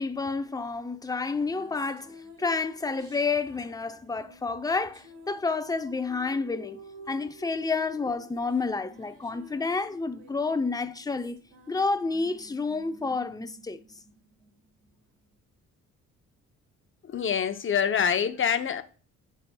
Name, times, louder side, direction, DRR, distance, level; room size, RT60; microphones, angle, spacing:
voice 1, 0.0-6.8 7.1-11.4 11.7-13.8, left 4 dB, 10° left, 0.6 m, -30 dB
sound 1, 1.3-14.9, equal, 85° right, 2.0 m, -51 dB
voice 2, 17.1-18.8, left 7 dB, 40° left, 0.8 m, -25 dB
9.9 x 4.2 x 2.3 m
cardioid pair, 90°, 30 cm